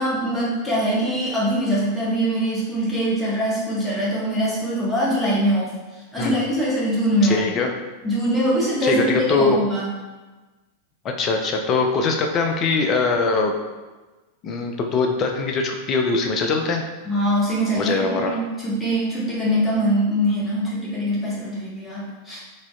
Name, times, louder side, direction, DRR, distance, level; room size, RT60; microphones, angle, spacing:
voice 1, 0.0-5.7 6.1-7.5 8.0-9.9 17.0-22.4, equal, 10° left, -7 dB, 1.2 m, -23 dB
voice 2, 7.2-7.7 8.8-9.6 11.2-13.5 14.4-16.8 17.8-18.4, left 4 dB, 30° left, 3 dB, 0.4 m, -22 dB
4.0 x 2.8 x 2.3 m, 1.2 s
figure-of-eight pair, 90°, 0 cm